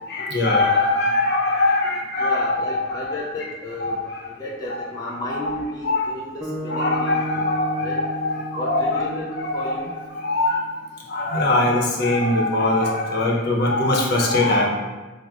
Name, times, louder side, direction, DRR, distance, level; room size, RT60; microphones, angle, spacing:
voice 1, 0.1-3.2 3.8-4.3 4.7-4.8 5.3-5.4 5.8-6.1 6.6-9.1 9.4-9.7 10.1-10.7 11.1-14.7, left 2 dB, 55° left, -2 dB, 0.7 m, -22 dB
voice 2, 2.2-4.0 4.3-7.5 7.8-8.0 8.6-9.9, left 1 dB, 20° left, -4 dB, 0.4 m, -33 dB
sound 1, 6.4-10.7, right 2 dB, 10° right, 0.7 m, -33 dB
4.7 x 2.0 x 3.6 m, 1.2 s
head